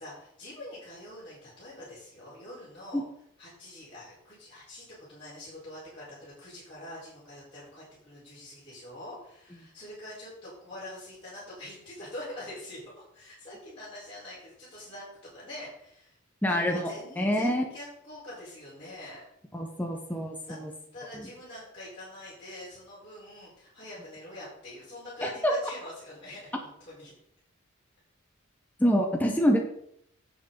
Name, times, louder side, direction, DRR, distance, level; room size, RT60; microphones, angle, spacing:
voice 1, 0.0-3.0 3.4-15.0 15.3-16.2 16.5-19.2 20.5-20.6 20.9-27.1, left 1 dB, 25° left, -11 dB, 4.6 m, -44 dB
voice 2, 16.4-16.9 17.2-17.6 19.5-20.7 21.1-21.2 25.2-25.5 28.8-29.6, equal, 10° left, 1 dB, 1.1 m, -26 dB
11.0 x 7.6 x 4.0 m, 0.72 s
head